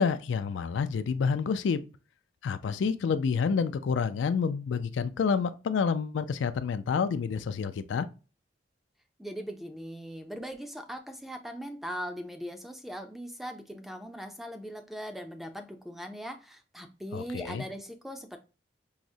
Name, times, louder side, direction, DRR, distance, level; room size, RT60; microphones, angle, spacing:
voice 1, 0.0-1.8 2.4-8.1 17.1-17.6, left 5 dB, 80° left, 0.3 m, -28 dB
voice 2, 9.2-18.4, equal, ahead, 0.4 m, -40 dB
4.8 x 2.0 x 2.6 m
head